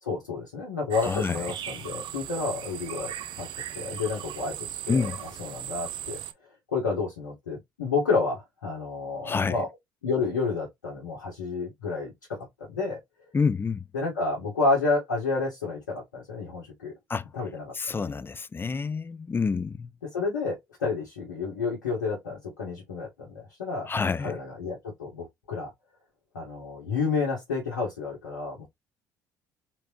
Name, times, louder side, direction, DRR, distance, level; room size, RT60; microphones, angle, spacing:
voice 1, 0.0-3.1 3.4-3.5 3.7-5.1 5.4-6.2 6.7-9.7 10.0-13.0 13.9-16.9 17.3-17.7 20.1-25.7 26.3-28.7, left 4 dB, 85° left, 1.4 m, -30 dB
sound 1, 0.9-6.3, right 11 dB, 55° right, 0.7 m, -38 dB
voice 2, 1.0-1.4 4.9-5.2 9.2-9.6 13.3-13.8 17.1-17.3 17.7-19.9 23.9-24.3, left 5 dB, 25° left, 0.4 m, -28 dB
4.1 x 3.2 x 2.9 m
hypercardioid pair, 55°, 10 cm